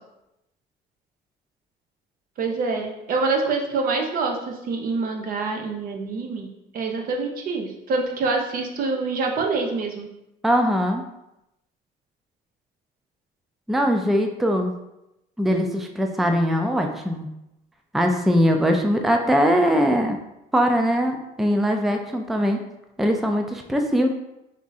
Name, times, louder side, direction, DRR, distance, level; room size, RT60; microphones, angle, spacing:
voice 1, 2.4-6.5 6.7-10.1, right 4 dB, 55° right, 2 dB, 0.7 m, -26 dB
voice 2, 10.4-11.0 13.7-14.7 15.4-17.3 17.9-20.2 20.5-22.6 23.0-24.1, equal, ahead, 4 dB, 0.4 m, -21 dB
3.5 x 2.6 x 4.0 m, 0.88 s
cardioid pair, 110°, 17 cm